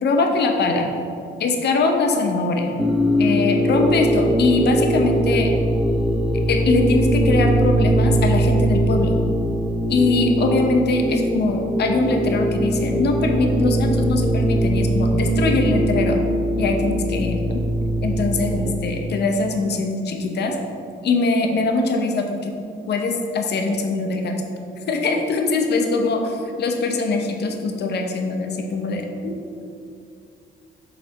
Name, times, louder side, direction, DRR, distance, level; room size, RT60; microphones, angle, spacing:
voice 1, 0.0-0.9 1.4-2.7 3.2-5.5 6.5-9.2 9.9-16.2 16.6-17.6 18.0-20.6 21.0-22.5 22.9-24.4 24.9-26.2 26.6-29.3, left 3 dB, 55° left, 3 dB, 0.7 m, -22 dB
sound 1, 2.8-18.7, right 1 dB, 5° right, 0.7 m, -21 dB
6.7 x 4.1 x 4.5 m, 2.6 s
cardioid pair, 90°, 20 cm